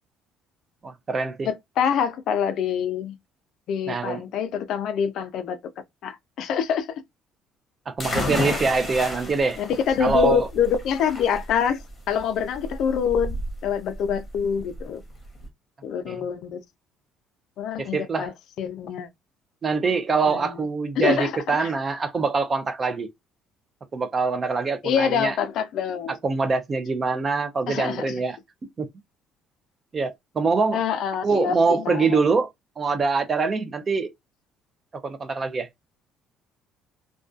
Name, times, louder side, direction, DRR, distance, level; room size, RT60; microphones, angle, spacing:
voice 1, 0.8-1.5 3.9-4.2 7.9-9.6 10.0-10.5 16.1-16.2 17.8-18.3 19.6-23.1 23.9-25.4 26.2-28.4 28.8-28.9 29.9-30.8 31.2-32.5 32.8-34.1 35.0-35.7, right 4 dB, 25° right, 0.4 m, -24 dB
voice 2, 1.4-3.2 3.7-5.6 6.0-7.0 9.6-11.8 12.1-13.4 13.6-15.0 15.8-16.6 17.6-18.3 18.6-19.1 20.2-20.6 21.0-21.7 24.8-26.2 27.7-28.1 30.7-32.2, left 7 dB, 60° left, 0.3 m, -25 dB
sound 1, 8.0-15.5, left 2 dB, 20° left, 0.8 m, -32 dB
2.4 x 2.2 x 2.4 m
cardioid pair, 145°, 0 cm